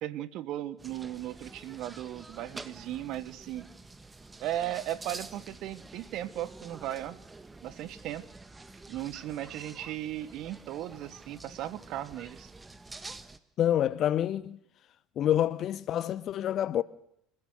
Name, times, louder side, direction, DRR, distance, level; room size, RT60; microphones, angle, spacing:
voice 1, 0.0-3.7 4.4-7.2 7.6-8.2 8.9-12.5, right 13 dB, 55° right, 1.2 m, -37 dB
sound 1, 0.8-13.4, right 3 dB, 15° right, 1.4 m, -48 dB
voice 2, 13.6-14.6 15.2-16.8, left 11 dB, 45° left, 0.9 m, -27 dB
27.5 x 16.0 x 6.6 m
figure-of-eight pair, 65°, 0 cm